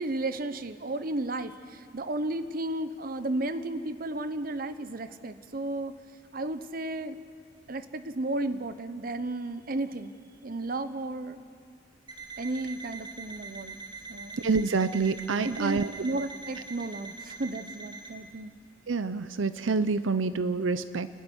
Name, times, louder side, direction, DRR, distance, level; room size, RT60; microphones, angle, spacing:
voice 1, 0.0-5.9 6.3-7.2 7.7-10.1 10.4-11.4 12.4-13.8 14.1-14.4 15.4-18.5, right 2 dB, 45° right, 12 dB, 0.9 m, -33 dB
Alarm, 12.1-18.1, right 4 dB, 25° right, 2.6 m, -43 dB
voice 2, 14.4-15.9 18.9-21.1, right 4 dB, 85° right, 13 dB, 0.7 m, -27 dB
30.0 x 12.0 x 9.9 m, 2.2 s
head